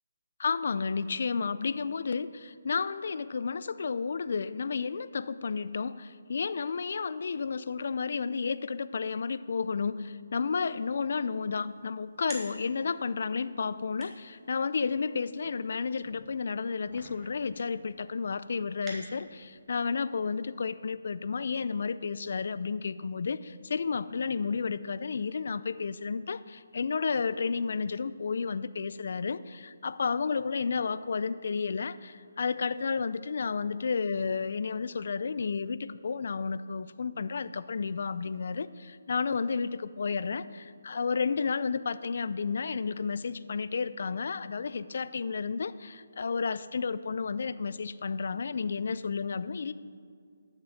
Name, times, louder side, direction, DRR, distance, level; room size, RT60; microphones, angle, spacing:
voice 1, 0.4-49.7, left 5 dB, 60° left, 15 dB, 0.4 m, -32 dB
sound 1, 11.3-19.6, right 2 dB, 15° right, 1.9 m, -51 dB
11.5 x 6.7 x 5.8 m, 2.2 s
figure-of-eight pair, 150°, 0 cm